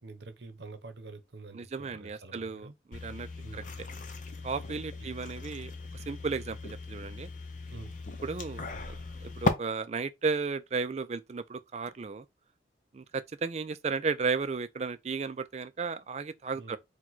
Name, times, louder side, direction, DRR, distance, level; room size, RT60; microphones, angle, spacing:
voice 1, 0.0-2.7 3.4-3.7 5.0-5.1 7.7-8.0 16.5-16.8, right 3 dB, 70° right, 0.8 m, -47 dB
voice 2, 1.5-3.3 3.5-3.9 4.4-5.7 6.1-7.3 8.2-9.0 9.2-12.3 12.9-16.8, right 4 dB, 35° right, 0.4 m, -34 dB
sound 1, 2.9-9.5, left 2 dB, 45° left, 0.7 m, -37 dB
4.6 x 2.3 x 4.0 m
head